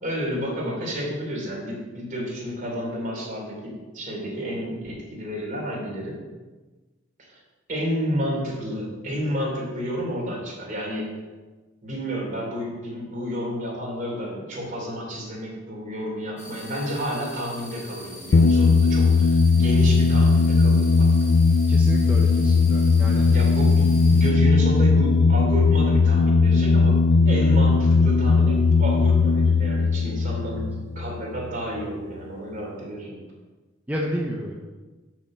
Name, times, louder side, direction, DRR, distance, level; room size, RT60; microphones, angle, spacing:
voice 1, 0.0-6.2 7.2-7.4 7.7-11.1 11.8-21.4 23.2-33.2, equal, 45° right, -2 dB, 3.0 m, -31 dB
sound 1, 16.4-24.3, left 1 dB, 45° left, 2.9 m, -43 dB
sound 2, 18.3-31.5, left 4 dB, 60° left, 0.4 m, -18 dB
voice 2, 21.7-23.3 33.9-34.7, equal, 10° right, -2 dB, 0.8 m, -30 dB
6.9 x 6.2 x 7.3 m, 1.3 s
head